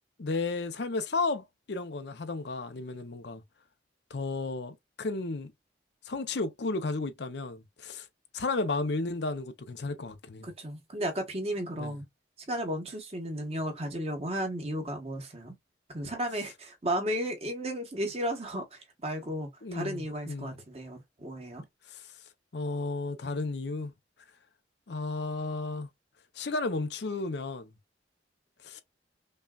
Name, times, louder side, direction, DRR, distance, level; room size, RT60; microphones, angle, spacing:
voice 1, 0.2-3.4 4.1-5.5 6.1-8.1 8.3-10.5 11.8-11.9 19.6-20.5 21.9-22.0 22.5-23.9 24.9-25.9 26.4-27.7 28.6-28.8, left 3 dB, 65° left, 0.6 m, -33 dB
voice 2, 10.4-12.0 12.5-15.5 15.9-21.6, right 1 dB, 35° right, 1.2 m, -34 dB
5.4 x 2.3 x 2.3 m
head